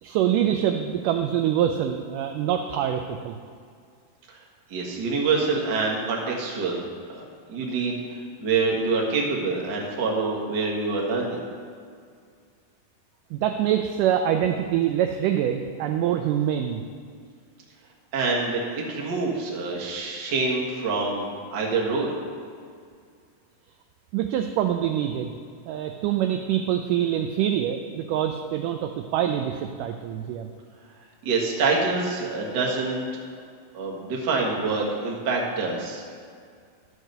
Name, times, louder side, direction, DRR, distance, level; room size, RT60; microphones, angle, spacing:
voice 1, 0.0-3.4 13.3-16.8 24.1-25.4 25.7-30.5, right 10 dB, 85° right, 5 dB, 1.9 m, -25 dB
voice 2, 4.7-6.8 7.1-11.4 18.1-22.1 31.2-33.1 33.7-36.0, right 4 dB, 50° right, -2 dB, 1.3 m, -26 dB
12.0 x 4.8 x 6.6 m, 2.2 s
omnidirectional pair, 4.1 m